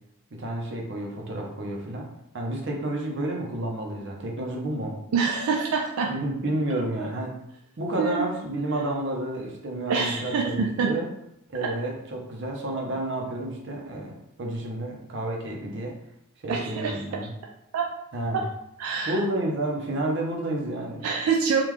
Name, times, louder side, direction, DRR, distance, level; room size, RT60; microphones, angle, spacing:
voice 1, 0.3-2.1 2.3-5.0 6.0-7.4 7.8-11.1 11.5-14.1 14.4-16.0 16.4-17.3 18.1-18.4 19.1-21.0, right 1 dB, 55° right, 0 dB, 0.7 m, -30 dB
voice 2, 5.1-6.1 8.0-8.3 9.9-10.9 11.6-11.7 16.5-17.0 17.7-17.9 18.3-18.4 18.8-19.2 21.0-21.6, right 5 dB, 85° right, 1 dB, 0.3 m, -25 dB
3.6 x 2.4 x 3.1 m, 0.80 s
head